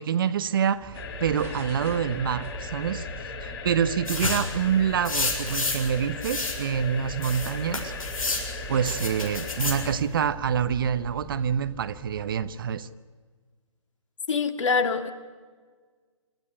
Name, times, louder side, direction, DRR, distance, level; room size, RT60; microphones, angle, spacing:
voice 1, 0.0-3.1 3.4-7.9 8.7-12.9, right 8 dB, 40° right, 13 dB, 0.9 m, -26 dB
sound 1, 0.7-12.9, right 2 dB, 15° right, 1.6 m, -41 dB
sound 2, 0.9-9.9, left 5 dB, 45° left, 3.1 m, -37 dB
sound 3, 4.1-4.5 5.1-5.9 6.2-6.6 7.2-8.5 8.9-9.8, left 3 dB, 80° left, 6.9 m, -30 dB
voice 2, 14.3-15.1, left 5 dB, 60° left, 7 dB, 2.3 m, -24 dB
27.0 x 13.5 x 9.9 m, 1.5 s
figure-of-eight pair, 145°, 18 cm